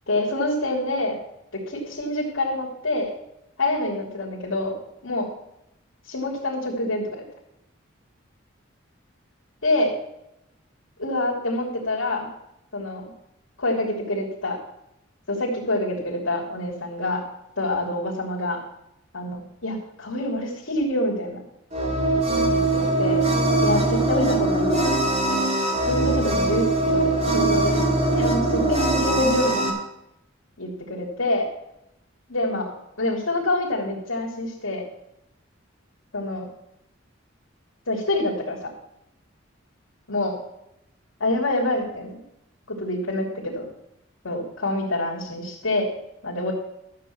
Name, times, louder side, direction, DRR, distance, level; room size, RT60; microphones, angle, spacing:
voice 1, 0.1-1.2 1.7-3.1 3.6-4.7 5.0-5.3 6.1-7.2 9.6-9.9 11.0-12.3 12.7-13.1 13.6-14.6 15.3-17.2 17.6-18.6 19.1-21.4 22.5-23.2 23.6-24.8 25.3-25.4 25.8-27.8 28.1-29.6 30.6-31.5 32.3-32.7 33.0-34.8 36.1-36.5 37.9-38.7 40.1-40.3 41.2-42.2 42.7-43.7 44.2-45.9 46.2-46.5, left 1 dB, 80° left, -4 dB, 3.0 m, -26 dB
sound 1, 21.7-29.7, right 2 dB, 30° right, 2.1 m, -22 dB
12.5 x 7.6 x 6.0 m, 0.83 s
head